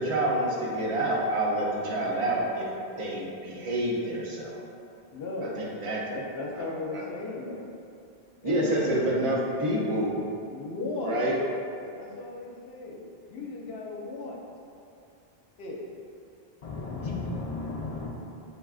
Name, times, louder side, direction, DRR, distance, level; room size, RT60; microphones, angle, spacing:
voice 1, 0.0-2.7 3.0-4.6 5.4-6.0 6.5-7.0 8.4-10.2 11.0-11.4, right 1 dB, 35° right, -4 dB, 0.7 m, -28 dB
voice 2, 5.1-5.5 6.1-7.7 8.4-9.1 10.5-11.1 11.9-14.4 15.6-15.8, left 2 dB, 75° left, -2 dB, 0.9 m, -36 dB
voice 3, 16.6-18.1, left 3 dB, 55° left, -3 dB, 0.4 m, -34 dB
6.7 x 2.4 x 2.4 m, 2.6 s
omnidirectional pair, 1.0 m